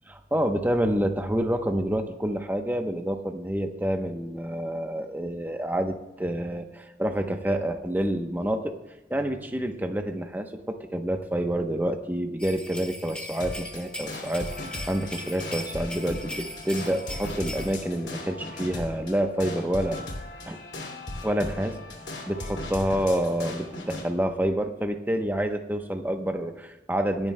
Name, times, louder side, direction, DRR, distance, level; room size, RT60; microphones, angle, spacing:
voice 1, 0.1-8.8 9.1-20.0 20.5-20.6 21.2-21.8 22.3-27.3, right 1 dB, 10° right, 5 dB, 0.8 m, -28 dB
sound 1, 12.4-17.7, left 1 dB, 5° left, 1.6 m, -39 dB
sound 2, 13.4-24.1, left 1 dB, 80° left, 2.6 m, -38 dB
25.5 x 11.0 x 2.2 m, 1.0 s
head